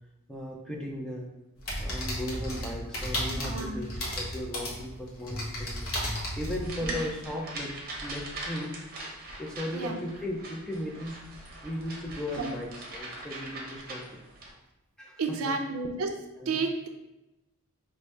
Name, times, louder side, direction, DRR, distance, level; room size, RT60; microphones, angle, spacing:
voice 1, 0.3-1.3 1.8-3.9 4.2-8.8 9.4-14.0 15.0-15.2 16.4-16.6, left 1 dB, 5° left, -3 dB, 0.6 m, -37 dB
sound 1, 1.6-7.2, equal, 65° left, 1.0 m, -34 dB
voice 2, 3.3-3.8 9.7-9.9 12.4-12.5 15.2-16.1 16.4-16.9, right 4 dB, 75° right, 4 dB, 0.5 m, -31 dB
sound 2, 6.6-14.5, right 2 dB, 45° right, 0.8 m, -41 dB
4.9 x 2.6 x 3.3 m, 0.94 s
head